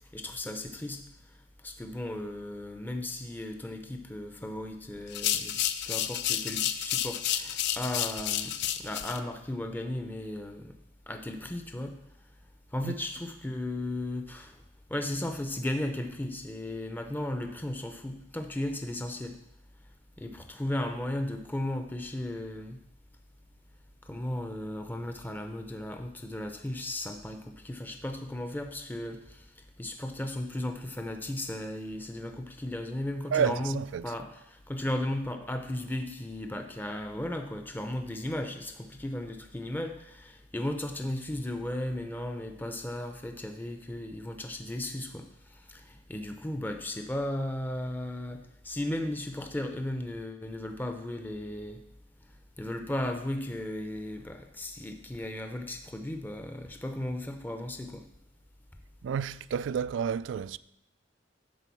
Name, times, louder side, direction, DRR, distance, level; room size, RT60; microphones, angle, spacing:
voice 1, 0.1-1.0 1.6-8.5 8.8-10.7 11.1-11.9 12.7-14.6 14.9-19.4 20.2-22.8 24.1-29.4 29.8-45.2 45.5-51.8 52.6-58.0, left 1 dB, 10° left, 0.6 m, -35 dB
sound 1, 5.1-9.2, left 11 dB, 65° left, 0.5 m, -30 dB
voice 2, 33.3-34.2 59.0-60.6, right 7 dB, 80° right, 0.3 m, -30 dB
10.5 x 4.0 x 7.0 m
head